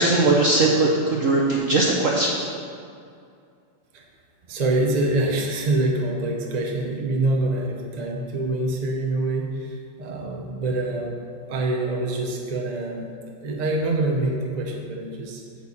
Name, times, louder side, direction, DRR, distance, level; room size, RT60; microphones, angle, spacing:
voice 1, 0.0-2.4, right 2 dB, 60° right, -2 dB, 0.8 m, -20 dB
voice 2, 4.5-11.2 11.5-13.1 13.4-15.4, right 2 dB, 40° right, 0 dB, 0.5 m, -25 dB
8.3 x 4.7 x 7.2 m, 2.4 s
omnidirectional pair, 2.2 m